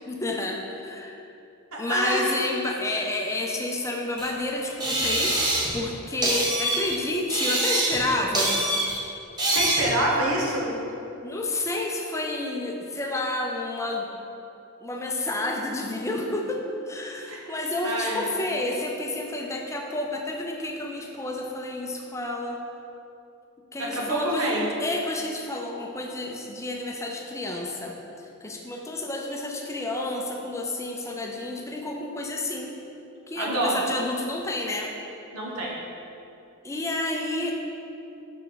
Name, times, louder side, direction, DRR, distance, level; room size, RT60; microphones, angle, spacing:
voice 1, 0.1-1.2 1.8-5.4 5.7-8.6 11.2-14.1 14.8-22.6 23.7-24.5 24.8-32.8 33.3-34.9 36.6-37.7, left 2 dB, 15° left, 1 dB, 0.5 m, -30 dB
voice 2, 1.7-2.4 9.5-10.7 17.3-17.6 17.8-18.5 23.8-24.7 33.4-33.8 35.3-35.7, right 1 dB, 75° right, -3 dB, 1.2 m, -27 dB
sound 1, 4.2-4.3 4.8-5.8 6.2-6.9 7.3-8.1 8.3-9.0 9.4-9.9, right 1 dB, 20° right, 1.1 m, -25 dB
5.8 x 5.4 x 4.0 m, 2.8 s
head